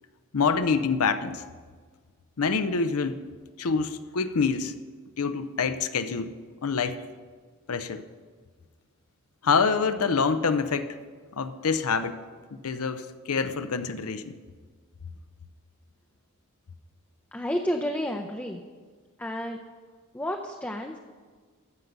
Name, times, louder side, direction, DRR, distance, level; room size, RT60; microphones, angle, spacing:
voice 1, 0.3-1.4 2.4-3.2 3.6-4.7 5.2-6.3 6.6-7.0 7.7-8.0 9.4-10.9 11.3-12.2 12.5-14.4, left 5 dB, 75° left, 10 dB, 0.6 m, -26 dB
voice 2, 17.3-18.6 19.2-19.6 20.1-21.0, equal, 10° left, 2 dB, 0.5 m, -30 dB
13.5 x 5.3 x 8.0 m, 1.5 s
head